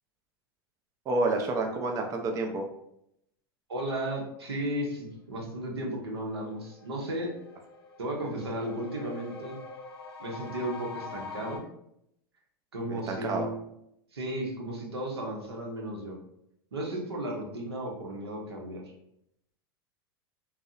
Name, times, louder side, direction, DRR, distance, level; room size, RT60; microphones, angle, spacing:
voice 1, 1.1-2.6 12.9-13.5, right 2 dB, 25° right, 3 dB, 0.4 m, -29 dB
voice 2, 3.7-7.3 8.0-9.6 10.2-11.6 12.7-13.6 14.1-16.2 16.7-18.8, right 1 dB, 90° right, 0 dB, 0.6 m, -34 dB
sound 1, 5.8-5.9 6.2-11.6, left 4 dB, 80° left, 0.5 m, -44 dB
2.6 x 2.0 x 2.4 m, 0.77 s
hypercardioid pair, 95°, 13 cm